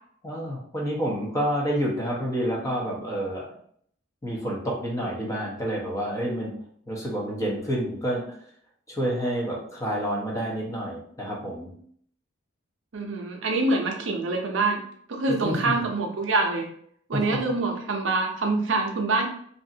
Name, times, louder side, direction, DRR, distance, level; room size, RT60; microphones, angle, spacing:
voice 1, 0.2-3.5 4.2-6.5 6.9-8.3 8.9-11.7 15.4-15.6 17.1-17.4, equal, 15° left, -3 dB, 0.8 m, -29 dB
voice 2, 12.9-14.8 15.1-16.7 17.1-19.3, right 3 dB, 70° right, 2 dB, 0.6 m, -25 dB
2.7 x 2.5 x 2.6 m, 0.62 s
head